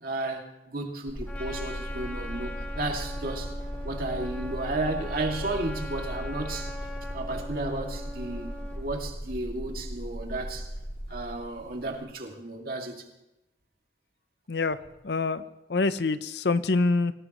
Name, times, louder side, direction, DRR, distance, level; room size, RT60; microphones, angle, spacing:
voice 1, 0.0-3.5 3.8-6.7 7.1-10.7 11.1-13.0, right 2 dB, 55° right, 2.3 m, -33 dB
sound 1, 1.1-12.0, equal, 35° left, 7.8 m, -37 dB
Trumpet, 1.3-8.8, left 1 dB, 10° left, 2.5 m, -41 dB
voice 2, 14.5-14.8 15.0-15.4 15.7-17.1, left 3 dB, 70° left, 0.7 m, -25 dB
25.5 x 17.0 x 3.1 m
head